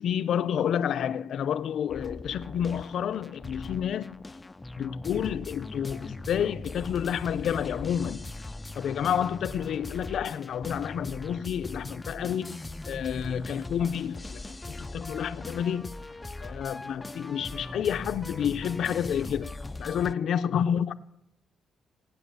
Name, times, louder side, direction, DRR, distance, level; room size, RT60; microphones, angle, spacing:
voice 1, 0.0-4.2 4.8-8.3 8.8-12.6 12.9-14.4 14.7-15.9 16.4-19.5 19.8-20.9, left 8 dB, 65° left, 0.6 m, -29 dB
sound 1, 1.9-20.1, left 2 dB, 15° left, 0.5 m, -40 dB
17.5 x 9.8 x 6.8 m
cardioid pair, 90°, 0 cm